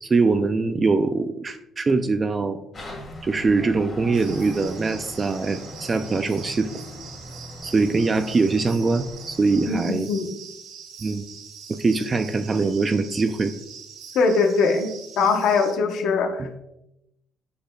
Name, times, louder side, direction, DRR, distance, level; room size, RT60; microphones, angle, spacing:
voice 1, 0.0-2.6 3.2-6.8 7.6-10.1 11.0-11.2 11.7-13.5 16.4-16.5, right 3 dB, 25° right, 8 dB, 0.3 m, -22 dB
sound 1, 2.7-9.8, equal, 30° left, 1.8 m, -40 dB
sound 2, 4.1-15.7, right 6 dB, 85° right, 1.7 m, -43 dB
voice 2, 9.7-10.3 14.1-16.6, left 4 dB, 70° left, 5 dB, 1.0 m, -22 dB
7.9 x 6.5 x 2.3 m, 0.84 s
cardioid pair, 135°, 0 cm